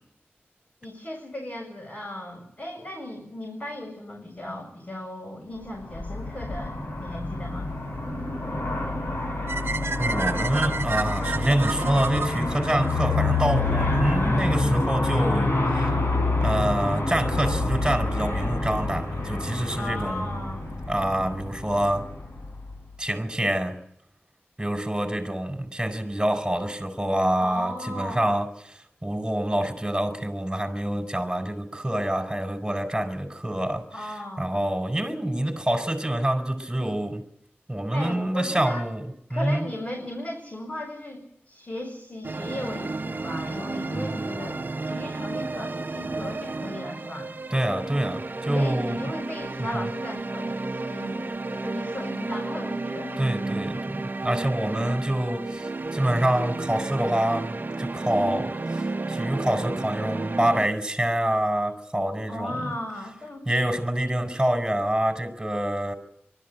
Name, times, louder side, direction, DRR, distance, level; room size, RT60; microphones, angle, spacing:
voice 1, 0.8-7.7 19.7-20.7 27.4-28.2 33.9-34.5 37.9-38.9 39.3-47.3 48.5-53.2 62.3-63.5, left 1 dB, 40° left, 7.3 m, -36 dB
Aircraft, 5.7-23.0, left 2 dB, 60° left, 5.5 m, -27 dB
sound 1, 9.5-13.6, right 3 dB, 75° right, 0.9 m, -31 dB
voice 2, 10.0-15.9 16.4-20.3 20.9-22.1 23.0-23.8 24.6-33.8 34.4-37.2 37.7-39.7 43.9-44.3 47.5-49.0 49.7-49.8 53.2-62.7 63.5-65.9, right 1 dB, 15° right, 4.8 m, -26 dB
sound 2, 42.2-60.7, right 3 dB, 50° right, 1.0 m, -32 dB
24.5 x 13.5 x 9.1 m
wide cardioid pair, 55°, 4 cm